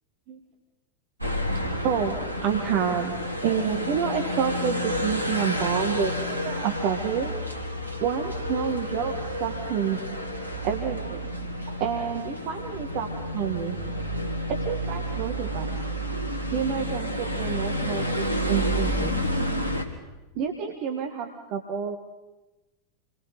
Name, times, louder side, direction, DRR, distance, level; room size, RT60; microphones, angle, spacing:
sound 1, 1.2-19.8, equal, 85° right, 2.0 m, -30 dB
voice 1, 1.7-3.2 3.4-7.4 8.0-10.0 10.6-11.3 11.8-13.8 14.5-15.8 16.5-19.1 20.4-22.0, right 7 dB, 45° right, 4 dB, 1.9 m, -29 dB
28.0 x 22.5 x 5.1 m, 1.1 s
figure-of-eight pair, 90°, 0 cm